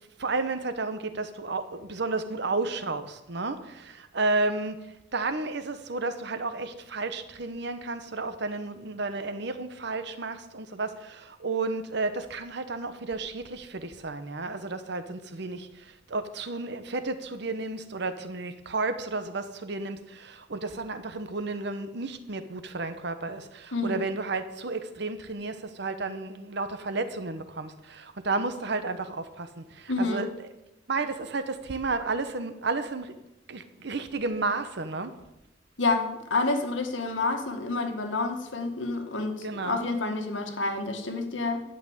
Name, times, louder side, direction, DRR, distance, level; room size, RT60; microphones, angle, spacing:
voice 1, 0.2-4.8 5.1-15.7 16.1-30.5 30.9-33.1 33.5-35.1 39.4-39.8, right 3 dB, 65° right, 10 dB, 1.1 m, -32 dB
voice 2, 29.9-30.2 35.8-41.6, left 3 dB, 85° left, 4 dB, 1.8 m, -29 dB
11.0 x 6.1 x 8.8 m, 0.92 s
head